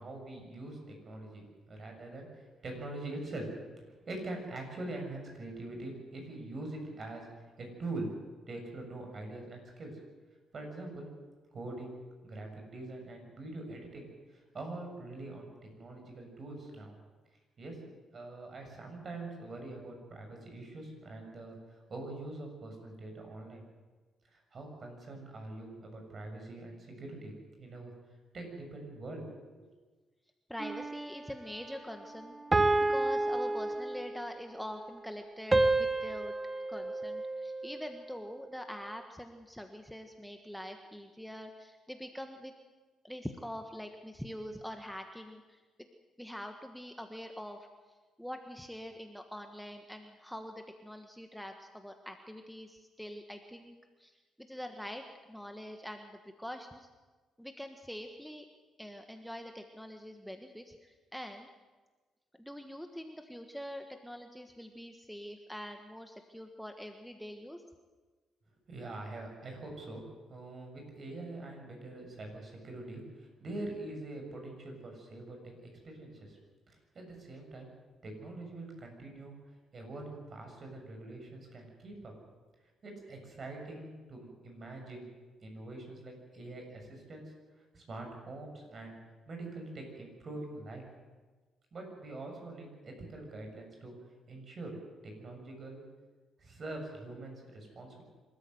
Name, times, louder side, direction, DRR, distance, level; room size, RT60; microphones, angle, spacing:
voice 1, 0.0-3.5 3.8-8.1 8.5-10.0 10.5-11.1 11.5-11.9 12.2-15.5 15.7-16.9 17.6-17.8 18.1-23.6 24.3-27.3 27.6-27.9 28.3-29.2 29.6-29.7 68.7-76.4 76.7-77.7 78.0-79.3 79.7-82.1 82.8-85.0 85.4-87.3 87.7-88.9 89.3-90.9 91.7-93.9 94.3-94.8 95.0-95.8 96.4-98.0, right 2 dB, 45° right, 2 dB, 6.8 m, -44 dB
voice 2, 30.5-32.4 32.9-36.3 36.7-42.5 43.0-45.6 46.2-47.7 48.2-56.9 57.4-58.5 58.8-61.5 62.4-67.6, equal, ahead, 5 dB, 1.4 m, -44 dB
sound 1, 30.6-31.3 32.5-34.3 35.5-37.9, right 2 dB, 20° right, 1.0 m, -30 dB
26.0 x 13.5 x 7.9 m, 1.3 s
cardioid pair, 90°, 0 cm